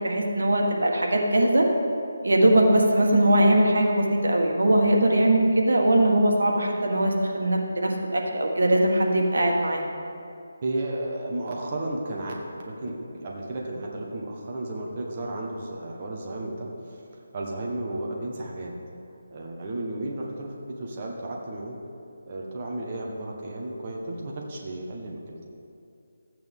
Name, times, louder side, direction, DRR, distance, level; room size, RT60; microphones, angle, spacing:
voice 1, 0.0-1.7 2.2-9.8, right 1 dB, 90° right, 1 dB, 1.6 m, -21 dB
voice 2, 10.6-12.3 12.6-18.7 19.3-21.8 22.2-25.5, right 1 dB, 30° right, -1 dB, 1.3 m, -33 dB
14.0 x 8.8 x 3.7 m, 2.5 s
figure-of-eight pair, 170°, 0 cm